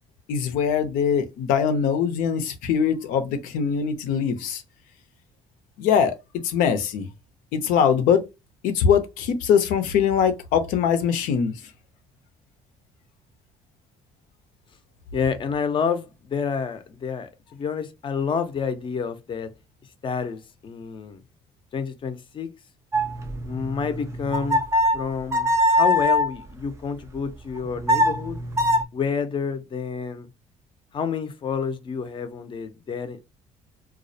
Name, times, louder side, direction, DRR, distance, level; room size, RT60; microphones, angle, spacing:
voice 1, 0.3-4.6 5.8-6.2 6.4-7.1 7.5-8.2 8.6-11.6, left 7 dB, 85° left, 0.5 m, -22 dB
voice 2, 15.1-19.5 20.0-21.2 21.7-22.5 23.4-24.6 24.9-28.4 28.9-30.3 30.9-33.3, left 6 dB, 35° left, 0.5 m, -29 dB
sound 1, 22.9-26.3 27.6-28.8, left 1 dB, 20° right, 0.4 m, -22 dB
2.3 x 2.0 x 2.6 m
cardioid pair, 105°, 14 cm